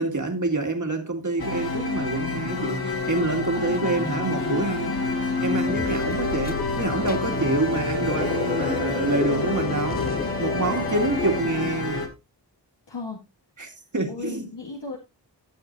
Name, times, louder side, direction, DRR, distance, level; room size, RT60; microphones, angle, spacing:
voice 1, 0.0-5.0 5.4-10.0 10.4-12.1 13.6-14.5, right 2 dB, 45° right, 2.2 m, -27 dB
sound 1, 1.4-12.1, left 3 dB, 60° left, 2.2 m, -28 dB
voice 2, 3.6-4.1 7.4-7.8 10.8-11.7 12.9-13.2 14.1-15.0, left 3 dB, 75° left, 2.1 m, -37 dB
sound 2, 5.7-11.4, left 4 dB, 25° left, 0.4 m, -31 dB
14.0 x 7.8 x 2.6 m
wide cardioid pair, 50°, 43 cm